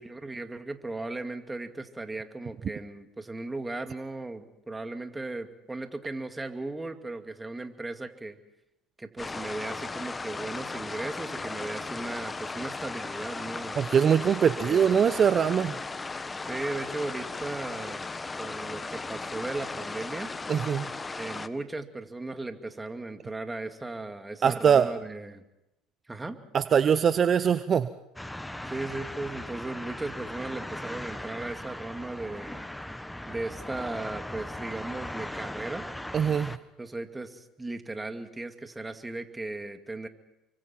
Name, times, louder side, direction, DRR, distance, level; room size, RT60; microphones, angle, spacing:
voice 1, 0.0-8.4 9.0-14.0 14.6-14.9 16.5-18.1 18.4-20.3 21.2-25.4 26.1-26.4 28.7-32.6 33.3-35.9 36.8-40.1, right 2 dB, 15° right, 6 dB, 2.4 m, -37 dB
sound 1, 9.2-21.5, left 3 dB, 20° left, 1.1 m, -36 dB
voice 2, 13.8-15.8 20.5-20.9 24.4-24.9 26.5-27.9 36.1-36.6, right 7 dB, 40° right, 12 dB, 0.9 m, -22 dB
sound 2, 28.2-36.6, left 1 dB, 5° left, 1.3 m, -39 dB
30.0 x 24.5 x 4.5 m, 0.91 s
hypercardioid pair, 70°, 0 cm